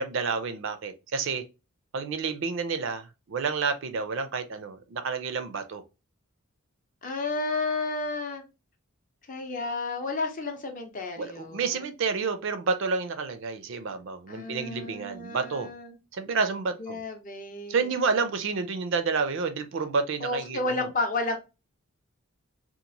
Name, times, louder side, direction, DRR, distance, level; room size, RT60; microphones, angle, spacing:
voice 1, 0.0-1.4 1.9-5.8 11.2-15.7 16.1-17.0 17.7-20.8, right 4 dB, 55° right, 0.4 m, -29 dB
voice 2, 7.0-8.4 9.3-11.8 14.3-16.0 16.8-17.9 20.2-21.4, left 3 dB, 35° left, 0.6 m, -32 dB
2.9 x 2.4 x 2.6 m
head